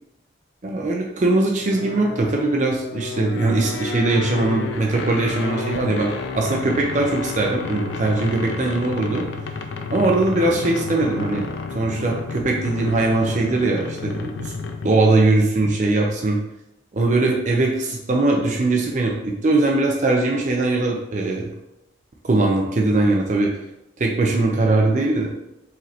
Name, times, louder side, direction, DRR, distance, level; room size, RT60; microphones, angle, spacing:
voice 1, 0.6-9.2 9.9-11.5 11.7-14.5 14.8-16.4 16.9-21.5 22.2-23.5 24.0-25.3, right 2 dB, 40° right, 0 dB, 0.5 m, -20 dB
sound 1, 1.7-15.1, left 4 dB, 80° left, 0.4 m, -31 dB
4.9 x 3.2 x 2.8 m, 0.89 s
head